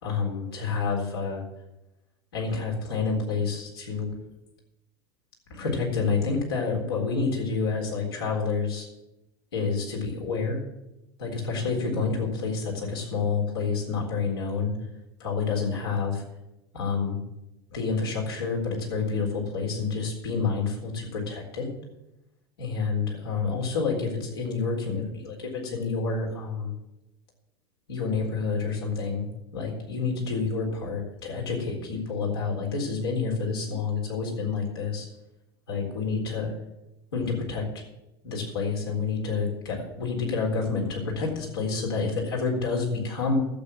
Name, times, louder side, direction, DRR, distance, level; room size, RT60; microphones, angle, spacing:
voice 1, 0.0-1.4 2.3-4.1 5.5-8.9 9.5-10.6 11.2-14.7 15.2-16.2 16.7-17.2 17.7-21.7 22.6-26.7 27.9-29.2 29.5-35.1 35.7-36.5 37.1-37.6 38.2-43.4, left 4 dB, 80° left, -1 dB, 3.9 m, -28 dB
12.0 x 7.9 x 7.6 m, 0.92 s
hypercardioid pair, 85°, 13 cm